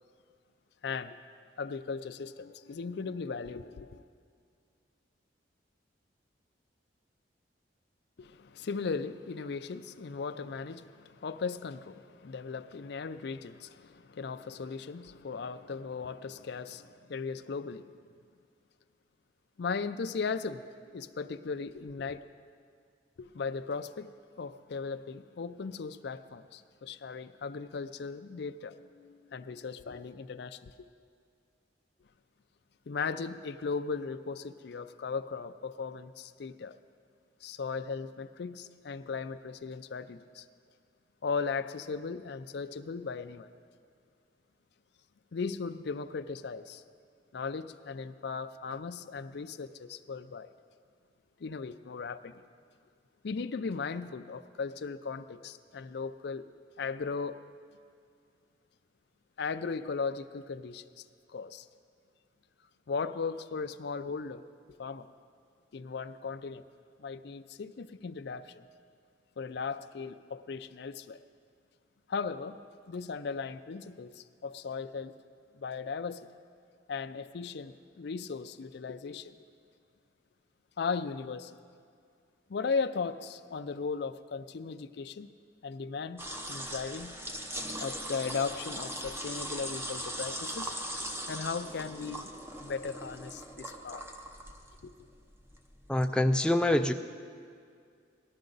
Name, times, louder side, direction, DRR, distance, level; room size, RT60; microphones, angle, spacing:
voice 1, 0.8-1.2 1.6-4.0 8.2-17.9 19.6-22.2 23.2-30.7 32.9-36.8 37.4-40.4 41.2-43.5 45.3-46.8 47.3-50.5 51.4-52.4 53.2-56.5 56.8-57.4 59.4-61.0 61.3-61.7 62.9-64.4 64.8-65.1 65.7-66.6 67.0-68.6 69.4-71.2 72.1-72.6 72.9-75.1 75.5-76.3 76.9-79.3 80.8-81.5 82.5-85.3 85.6-87.2 87.8-90.7 91.3-92.3 92.6-94.1 94.8-94.9, left 5 dB, 60° left, 0.4 m, -37 dB
sound 1, 86.2-96.1, equal, 15° right, 0.8 m, -40 dB
voice 2, 95.9-96.9, left 1 dB, 5° left, 0.4 m, -25 dB
18.5 x 12.0 x 3.9 m
head